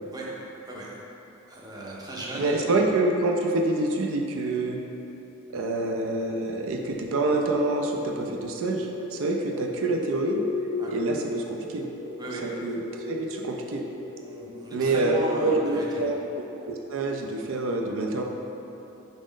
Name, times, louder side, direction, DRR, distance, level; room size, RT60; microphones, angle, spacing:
voice 1, 1.5-2.6 10.8-10.9 12.2-12.5 14.2-16.1, right 1 dB, 20° right, -5 dB, 0.6 m, -36 dB
voice 2, 2.4-4.8 5.5-10.4 10.9-11.9 12.6-12.8 13.1-13.8 14.7-18.2, right 2 dB, 70° right, 1 dB, 0.4 m, -26 dB
sound 1, 6.1-14.9, left 2 dB, 45° left, 0.4 m, -37 dB
6.1 x 2.1 x 3.7 m, 2.9 s
head